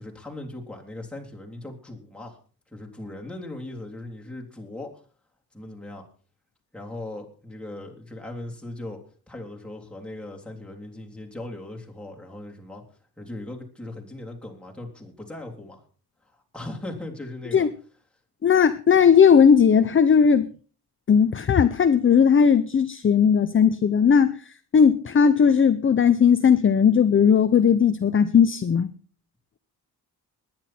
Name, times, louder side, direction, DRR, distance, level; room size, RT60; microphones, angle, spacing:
voice 1, 0.0-2.4 2.7-4.9 5.5-6.0 6.7-12.8 13.2-15.8 16.5-17.7, left 1 dB, 5° left, 3.4 m, -38 dB
voice 2, 18.4-20.5 21.1-24.4 24.7-28.9, left 7 dB, 35° left, 0.7 m, -17 dB
20.0 x 10.5 x 4.4 m
wide cardioid pair, 150°, 38 cm